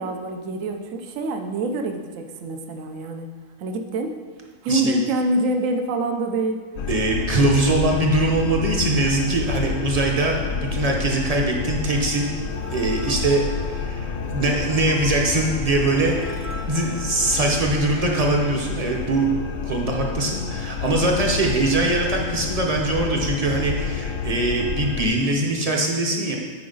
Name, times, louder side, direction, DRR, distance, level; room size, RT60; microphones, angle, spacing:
voice 1, 0.0-3.3 3.6-4.1 4.6-6.6, right 2 dB, 70° right, 5 dB, 1.0 m, -25 dB
sound 1, 6.8-25.1, left 6 dB, 70° left, 0.9 m, -29 dB
voice 2, 6.9-12.3 12.7-16.2 16.7-19.3 19.6-26.4, right 2 dB, 35° right, 0 dB, 0.8 m, -22 dB
sound 2, 12.5-18.0, left 1 dB, 35° left, 0.5 m, -41 dB
9.3 x 4.7 x 3.9 m, 1.5 s
omnidirectional pair, 1.5 m